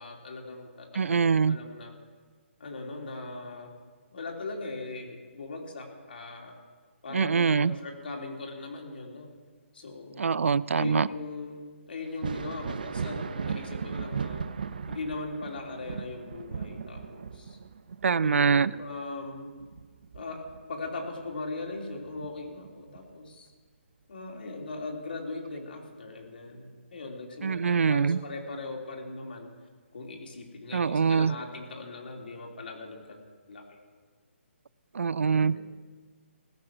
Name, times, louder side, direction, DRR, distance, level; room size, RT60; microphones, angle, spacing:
voice 1, 0.0-1.9 2.6-3.7 4.1-6.6 7.0-9.3 9.7-10.2 10.7-14.5 14.9-17.6 18.2-19.5 20.1-23.5 24.1-29.5 29.9-33.2 33.5-33.8 35.3-35.6, left 3 dB, 50° left, 1 dB, 3.2 m, -39 dB
voice 2, 1.0-1.6 7.1-7.8 10.2-11.1 18.0-18.7 27.4-28.2 30.7-31.3 34.9-35.6, right 5 dB, 80° right, 20 dB, 0.4 m, -24 dB
Thunder, 12.1-21.4 21.8-23.0 24.6-24.7 25.4-25.6, right 6 dB, 40° right, 0.6 m, -37 dB
20.5 x 7.8 x 6.1 m, 1.4 s
hypercardioid pair, 180°, 7 cm